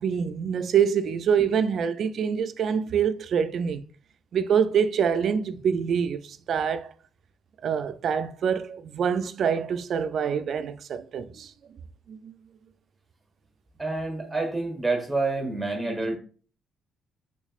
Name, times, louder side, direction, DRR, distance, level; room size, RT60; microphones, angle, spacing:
voice 1, 0.0-3.8 4.3-6.9 7.6-11.5 12.1-12.3, right 7 dB, 60° right, 0.3 m, -25 dB
voice 2, 13.8-16.2, right 2 dB, 10° right, 1.1 m, -28 dB
3.5 x 3.0 x 2.4 m
cardioid pair, 90°, 0 cm